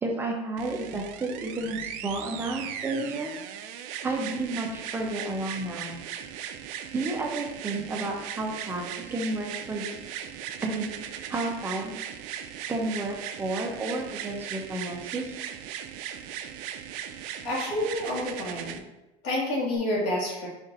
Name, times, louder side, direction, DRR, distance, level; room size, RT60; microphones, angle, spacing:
voice 1, 0.0-3.3 4.0-5.9 6.9-9.9 10.6-10.9 11.3-12.0 12.7-15.4, right 2 dB, 15° right, 0 dB, 0.6 m, -31 dB
sound 1, 0.6-18.8 19.8-19.9, right 9 dB, 60° right, 0.4 m, -38 dB
voice 2, 17.4-18.8 19.2-20.5, left 1 dB, 75° left, -5 dB, 1.4 m, -28 dB
5.3 x 2.6 x 3.9 m, 0.98 s
cardioid pair, 150°, 15 cm